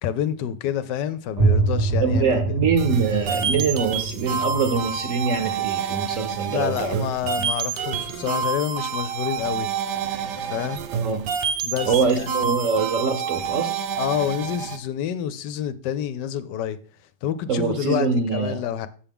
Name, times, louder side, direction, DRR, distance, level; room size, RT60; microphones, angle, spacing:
voice 1, 0.0-2.6 6.5-9.7 10.4-10.8 11.6-12.5 14.0-16.8 17.2-18.1 18.3-18.9, left 10 dB, 80° left, 1.2 m, -28 dB
sound 1, 1.4-7.0, right 3 dB, 30° right, 0.9 m, -26 dB
voice 2, 2.0-7.5 10.9-11.3 11.8-13.9 17.5-18.6, right 5 dB, 55° right, 1.0 m, -24 dB
sound 2, 2.8-14.8, right 7 dB, 80° right, 1.3 m, -28 dB
7.3 x 7.0 x 3.5 m
omnidirectional pair, 1.9 m